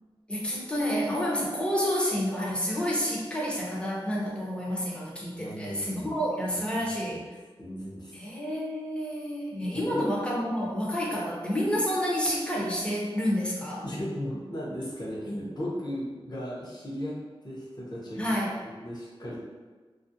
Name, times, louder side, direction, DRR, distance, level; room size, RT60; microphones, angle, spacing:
voice 1, 0.3-7.2 8.1-13.8 18.2-18.5, equal, 10° left, -4 dB, 0.6 m, -29 dB
voice 2, 5.3-6.1 7.1-7.2 7.6-8.2 9.7-10.0 13.8-17.2 17.4-18.3 18.6-19.4, equal, 45° left, -7 dB, 0.8 m, -36 dB
2.4 x 2.0 x 2.6 m, 1.4 s
wide cardioid pair, 75°, 10 cm